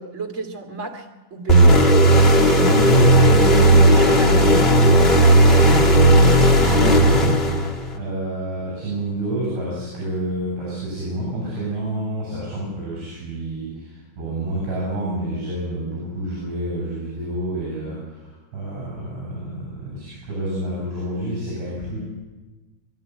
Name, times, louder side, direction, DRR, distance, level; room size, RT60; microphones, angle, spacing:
voice 1, 0.0-1.9 2.3-2.8 3.7-4.5, right 3 dB, 90° right, 2 dB, 0.6 m, -32 dB
sound 1, 1.5-7.9, right 1 dB, 65° left, 0.6 m, -14 dB
voice 2, 2.6-22.0, right 1 dB, 70° right, -4 dB, 9.7 m, -28 dB
23.5 x 12.5 x 9.3 m, 1.2 s
omnidirectional pair, 5.2 m